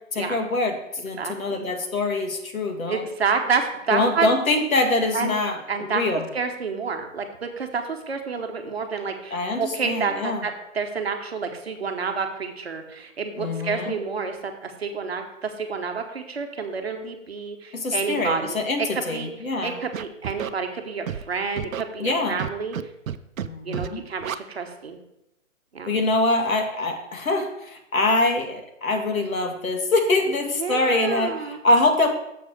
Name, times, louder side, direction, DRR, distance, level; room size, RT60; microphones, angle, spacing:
voice 1, 0.1-3.1 3.9-6.3 9.3-10.4 13.4-14.0 17.7-19.8 22.0-22.4 23.4-24.0 25.9-32.1, left 2 dB, 85° left, 4 dB, 1.9 m, -24 dB
voice 2, 1.2-1.7 2.9-4.3 5.1-5.4 5.7-6.0 6.3-18.6 18.9-19.3 19.6-22.8 23.6-25.0 25.7-25.9 30.6-31.6, right 5 dB, 50° right, 5 dB, 1.1 m, -29 dB
Scratching (performance technique), 19.9-20.5 21.1-21.2 21.6-21.8 22.4-22.8 23.1-23.5 23.7-23.9 24.2-24.4, right 9 dB, 85° right, 0.6 m, -30 dB
7.0 x 4.8 x 6.4 m, 0.84 s
hypercardioid pair, 180°, 40 cm